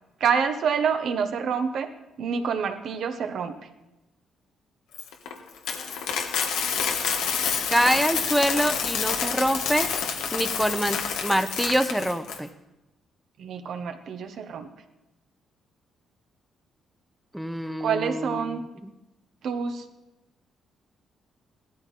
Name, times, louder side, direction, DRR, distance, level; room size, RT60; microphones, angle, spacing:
voice 1, 0.2-1.9 2.2-3.6 13.4-14.7 17.8-18.6 19.4-19.8, right 6 dB, 70° right, 6 dB, 1.3 m, -27 dB
Coin (dropping), 4.9-12.4, left 6 dB, 90° left, 1.6 m, -28 dB
voice 2, 7.7-9.9 10.3-12.5 17.3-18.6 18.8-18.9, equal, 5° right, 10 dB, 0.9 m, -25 dB
17.0 x 13.5 x 4.2 m, 0.98 s
cardioid pair, 90°, 0 cm